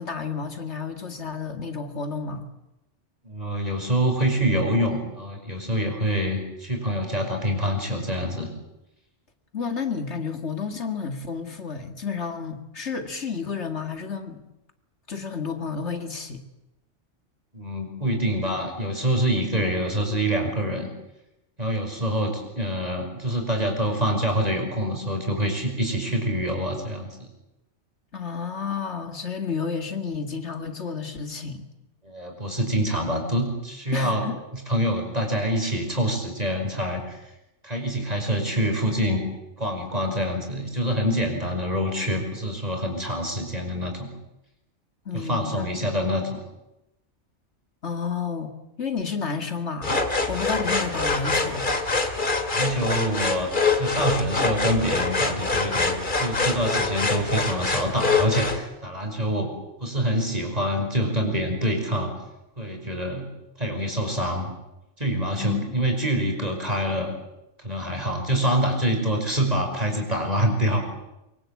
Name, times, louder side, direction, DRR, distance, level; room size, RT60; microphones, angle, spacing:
voice 1, 0.0-2.4 9.5-14.4 15.1-16.4 28.1-31.7 33.9-34.4 45.1-46.3 47.8-49.9 50.3-51.7 65.4-65.7, left 5 dB, 70° left, 7 dB, 2.3 m, -31 dB
voice 2, 3.2-8.5 17.5-20.9 21.6-27.3 32.0-34.2 34.7-37.2 37.6-39.2 39.6-44.1 45.1-46.4 52.5-53.5 53.7-59.5 59.8-62.1 62.6-63.3 63.6-64.5 65.0-67.1 67.6-70.8, equal, 30° right, 3 dB, 5.8 m, -26 dB
sound 1, 49.8-58.6, left 3 dB, 45° left, 2.5 m, -25 dB
24.0 x 24.0 x 8.4 m, 0.91 s
omnidirectional pair, 1.2 m